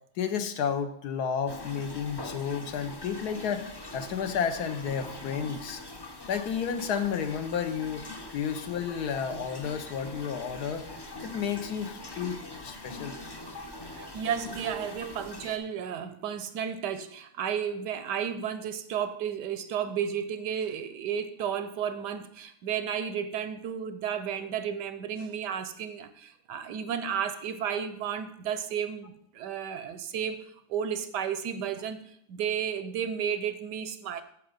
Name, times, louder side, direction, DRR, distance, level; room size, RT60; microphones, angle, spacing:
voice 1, 0.2-5.8 6.3-8.1 8.3-10.8 11.2-13.2, left 7 dB, 70° left, 1.4 m, -32 dB
sound 1, 1.5-15.6, left 2 dB, 40° left, 0.3 m, -43 dB
voice 2, 13.8-30.4 30.7-32.0 32.3-34.2, right 8 dB, 90° right, 1.3 m, -33 dB
8.2 x 7.2 x 5.2 m
omnidirectional pair, 1.8 m